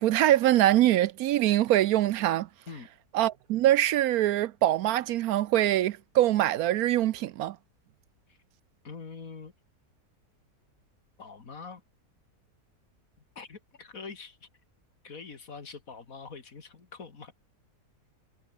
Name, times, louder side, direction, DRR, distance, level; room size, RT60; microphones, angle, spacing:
voice 1, 0.0-2.5 3.1-7.6, right 13 dB, 75° right, 1.0 m, -23 dB
voice 2, 8.8-9.5 11.2-11.8 13.4-14.5 15.0-17.3, left 5 dB, 60° left, 2.6 m, -44 dB
omnidirectional pair, 1.7 m